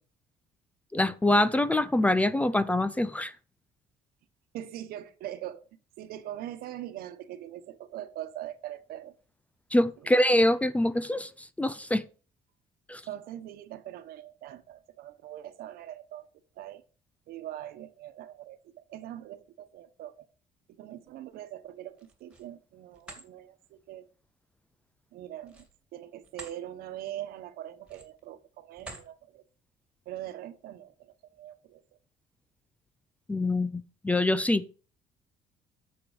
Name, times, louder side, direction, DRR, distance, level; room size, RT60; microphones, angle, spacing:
voice 1, 0.9-3.3 9.7-12.0 12.9-13.0 33.3-34.7, left 1 dB, 10° left, 16 dB, 0.5 m, -25 dB
voice 2, 4.5-5.7 6.0-9.2 10.0-10.1 13.0-16.3 16.5-16.8 17.3-20.3 20.7-24.1 25.1-25.7 25.9-29.4 30.0-31.8, right 12 dB, 75° right, 10 dB, 1.3 m, -42 dB
sound 1, 21.9-22.5 22.9-23.3 25.4-26.6 27.0-27.2 27.8-28.3 28.7-29.1, right 2 dB, 5° right, 2.4 m, -47 dB
8.9 x 7.0 x 5.1 m, 0.37 s
cardioid pair, 145°, 15 cm